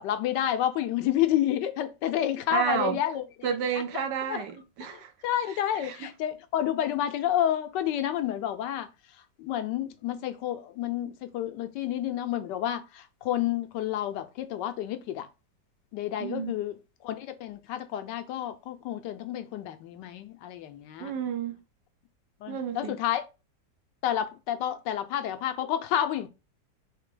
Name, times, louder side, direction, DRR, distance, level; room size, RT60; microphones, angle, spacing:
voice 1, 0.0-3.2 3.9-4.4 4.9-8.9 9.4-15.3 15.9-16.8 17.0-21.1 22.4-23.2 24.0-26.3, left 11 dB, 85° left, 1.3 m, -30 dB
voice 2, 2.5-3.0 3.4-5.1 5.7-6.0 16.2-16.6 21.0-21.6 22.5-23.0, right 8 dB, 75° right, 1.3 m, -31 dB
3.9 x 3.3 x 3.7 m
omnidirectional pair, 1.9 m